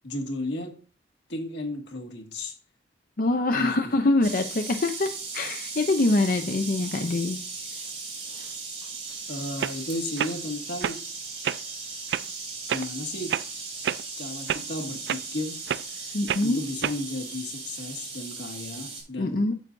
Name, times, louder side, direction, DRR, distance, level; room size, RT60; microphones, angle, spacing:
voice 1, 0.0-0.8 1.3-2.6 3.5-3.9 9.3-11.0 12.7-13.4 14.2-15.6 16.4-19.5, left 1 dB, 85° left, 1.8 m, -34 dB
voice 2, 3.2-7.4 16.1-16.6 19.2-19.5, left 2 dB, 50° left, 0.6 m, -24 dB
sound 1, 4.2-19.0, right 4 dB, 30° right, 5.1 m, -37 dB
sound 2, 9.1-9.2 9.6-9.8 10.2-10.3 10.8-11.0 11.4-11.6 12.1-12.2 12.7-12.9 13.3-13.5 13.8-14.0 14.5-14.6 15.1-15.2 15.7-15.9 16.3-16.5 16.8-17.0, right 9 dB, 75° right, 0.3 m, -28 dB
9.0 x 8.2 x 2.6 m
head